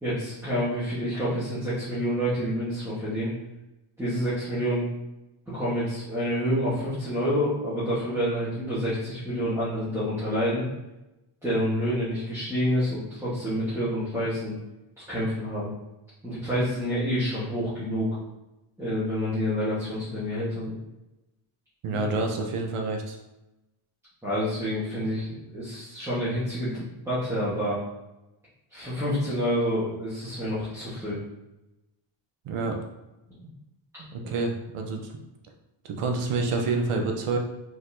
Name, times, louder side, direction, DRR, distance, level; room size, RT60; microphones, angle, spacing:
voice 1, 0.0-3.3 4.0-4.8 5.5-10.6 11.4-14.5 15.1-15.7 16.2-18.1 18.8-20.7 24.2-27.8 28.7-31.2 33.4-33.5, equal, 5° right, -12 dB, 1.4 m, -28 dB
voice 2, 21.8-23.2 32.4-32.8 34.0-35.0 35.8-37.4, right 3 dB, 85° right, 3 dB, 0.9 m, -28 dB
4.7 x 4.1 x 2.7 m, 0.97 s
wide cardioid pair, 165°, 50 cm